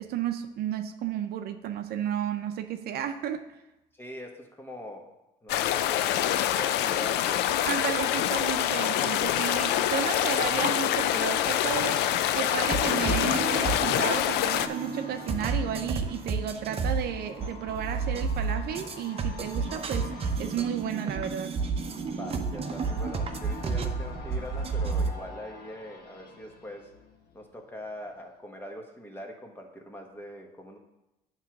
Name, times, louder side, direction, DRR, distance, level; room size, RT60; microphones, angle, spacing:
voice 1, 0.0-3.5 7.6-12.0 12.3-20.1 20.4-21.6, right 9 dB, 70° right, 8 dB, 0.6 m, -33 dB
voice 2, 3.9-5.1 5.4-7.5 22.1-26.9 27.3-30.8, left 1 dB, 10° left, 2 dB, 1.3 m, -42 dB
sound 1, 5.5-14.7, left 11 dB, 85° left, 0.4 m, -26 dB
sound 2, 10.6-27.7 28.0-28.1, left 4 dB, 65° left, 1.1 m, -47 dB
sound 3, 12.7-25.1, right 4 dB, 35° right, 0.8 m, -31 dB
9.3 x 3.1 x 5.9 m, 0.95 s
cardioid pair, 110°, 17 cm